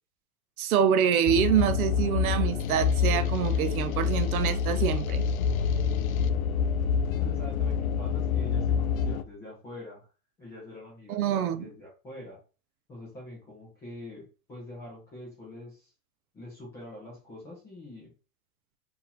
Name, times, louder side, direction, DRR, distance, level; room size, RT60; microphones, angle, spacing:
voice 1, 0.6-5.3 11.1-11.6, right 9 dB, 70° right, 0.7 m, -26 dB
sound 1, 1.3-9.2, left 6 dB, 65° left, 0.5 m, -27 dB
voice 2, 7.2-10.1 10.4-12.4 12.9-15.9 16.3-18.1, left 1 dB, 5° left, 0.5 m, -44 dB
4.7 x 2.7 x 3.3 m
supercardioid pair, 180°, 45 cm